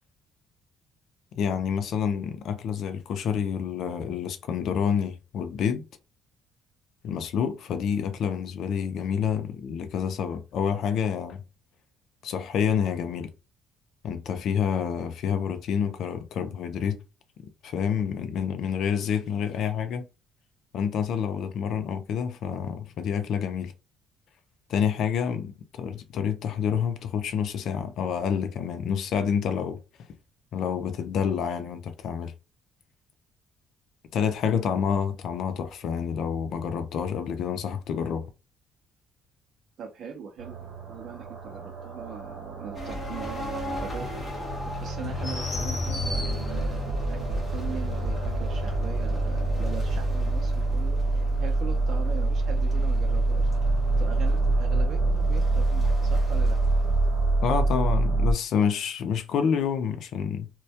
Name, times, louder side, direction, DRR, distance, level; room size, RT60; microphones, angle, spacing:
voice 1, 1.3-5.8 7.0-11.4 12.2-13.3 14.0-17.0 17.6-20.1 20.7-23.7 24.7-29.8 30.5-32.3 34.1-38.3 57.4-60.5, left 7 dB, 65° left, 0.4 m, -28 dB
voice 2, 39.8-53.5 54.0-56.6, right 7 dB, 55° right, 0.4 m, -41 dB
sound 1, 40.4-58.3, right 2 dB, 75° right, 0.8 m, -26 dB
sound 2, 42.7-56.6, left 2 dB, 20° left, 0.8 m, -35 dB
2.2 x 2.1 x 2.7 m
cardioid pair, 135°, 0 cm